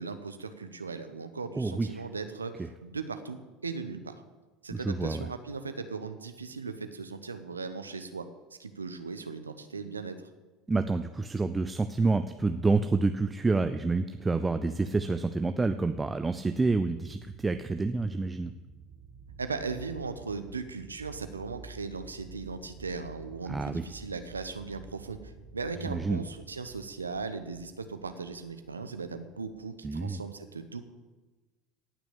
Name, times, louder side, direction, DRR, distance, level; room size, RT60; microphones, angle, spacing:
voice 1, 0.0-4.2 4.6-8.3 8.6-10.2 19.4-30.8, right 4 dB, 90° right, 9 dB, 1.0 m, -38 dB
voice 2, 1.5-2.0 2.6-2.7 4.7-5.3 10.7-18.5 23.5-23.8 25.8-26.2 29.8-30.2, right 3 dB, 15° right, 8 dB, 0.7 m, -28 dB
sound 1, 13.8-30.2, right 5 dB, 55° right, 1.5 m, -52 dB
17.0 x 6.2 x 8.4 m, 1.2 s
figure-of-eight pair, 70°, 0 cm